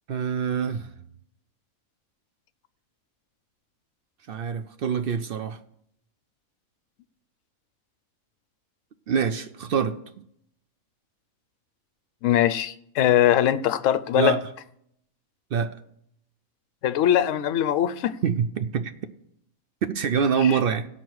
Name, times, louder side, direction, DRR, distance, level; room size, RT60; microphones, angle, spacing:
voice 1, 0.1-0.9 4.3-5.6 9.1-10.0 14.2-14.4 15.5-15.8 18.2-18.9 19.9-20.9, right 6 dB, 65° right, 0.5 m, -25 dB
voice 2, 12.2-14.4 16.8-18.2 20.4-20.6, left 11 dB, 65° left, 0.9 m, -22 dB
17.0 x 5.9 x 4.7 m
omnidirectional pair, 1.5 m